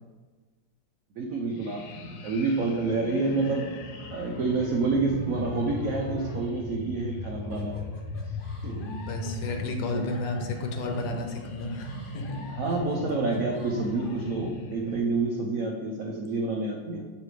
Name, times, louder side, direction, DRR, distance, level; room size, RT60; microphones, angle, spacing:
voice 1, 1.2-1.8 2.2-3.7 4.1-7.8 8.6-8.9 9.9-10.0 12.6-17.1, right 3 dB, 75° right, 0 dB, 0.7 m, -28 dB
sound 1, 1.5-15.0, left 1 dB, 85° left, 1.5 m, -38 dB
sound 2, 3.2-6.3, left 2 dB, 40° right, 0.6 m, -43 dB
sound 3, 7.5-14.3, left 3 dB, 45° left, 0.7 m, -49 dB
voice 2, 8.7-12.4, left 2 dB, 70° left, 3 dB, 1.3 m, -33 dB
7.2 x 3.3 x 4.8 m, 1.4 s
omnidirectional pair, 2.2 m